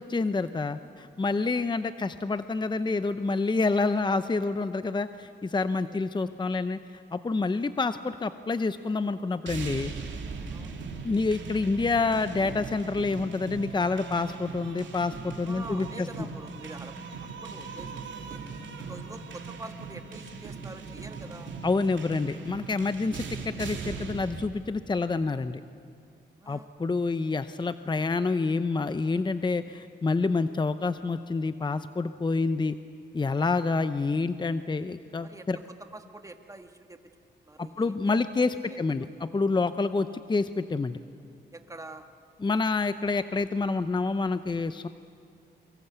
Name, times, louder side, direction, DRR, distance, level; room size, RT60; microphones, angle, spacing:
voice 1, 0.0-9.9 11.0-16.1 21.6-25.6 26.5-32.7 33.1-35.6 37.6-41.0 42.4-44.9, left 3 dB, 25° left, 11 dB, 0.7 m, -28 dB
sound 1, 9.5-24.4, right 5 dB, 85° right, 2.8 m, -39 dB
voice 2, 10.5-10.8 15.5-18.4 18.8-21.5 26.4-26.7 35.2-35.6 35.9-37.1 37.4-38.1 38.4-39.2 41.5-42.1, right 2 dB, 15° right, 6 dB, 1.8 m, -46 dB
28.0 x 24.0 x 8.1 m, 2.3 s
cardioid pair, 95°, 19 cm